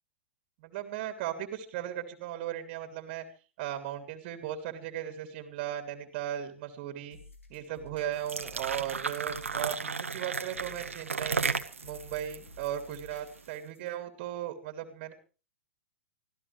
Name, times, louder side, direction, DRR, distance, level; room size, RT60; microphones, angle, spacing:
voice 1, 0.6-3.2 3.6-7.2 7.5-11.4 11.8-15.1, right 11 dB, 45° right, 6 dB, 3.0 m, -37 dB
sound 1, 7.1-14.0, left 3 dB, 85° left, 4.4 m, -53 dB
sound 2, 8.1-13.4, right 5 dB, 85° right, 1.6 m, -34 dB
25.0 x 15.5 x 3.3 m, 0.36 s
hypercardioid pair, 110°, 7 cm